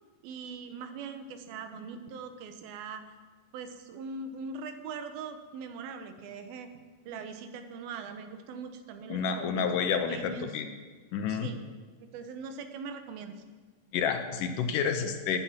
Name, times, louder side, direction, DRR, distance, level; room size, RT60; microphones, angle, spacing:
voice 1, 0.2-3.1 3.5-6.7 7.1-9.6 10.1-10.5 11.3-11.6 12.1-13.4, right 5 dB, 90° right, 8 dB, 2.9 m, -41 dB
voice 2, 9.1-10.7 11.1-11.5 13.9-15.4, left 7 dB, 75° left, 7 dB, 2.3 m, -29 dB
17.5 x 9.4 x 5.8 m, 1.4 s
omnidirectional pair, 4.1 m